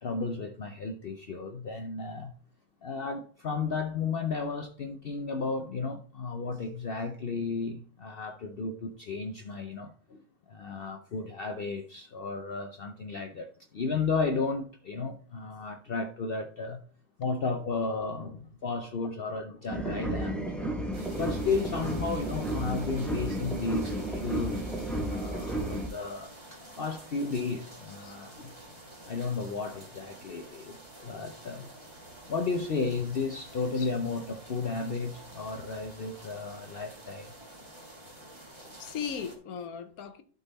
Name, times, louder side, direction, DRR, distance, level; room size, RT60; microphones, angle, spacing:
voice 1, 0.0-2.3 2.8-10.2 10.5-16.8 17.2-20.5 21.1-28.5 29.1-31.9 32.3-37.3 38.6-38.8, left 4 dB, 55° left, 0.7 m, -33 dB
sound 1, 19.7-25.9, right 1 dB, ahead, 0.9 m, -33 dB
sound 2, 20.9-39.4, right 1 dB, 20° right, 1.6 m, -49 dB
voice 2, 38.8-40.2, left 7 dB, 75° left, 1.3 m, -37 dB
12.0 x 4.0 x 4.0 m
omnidirectional pair, 1.5 m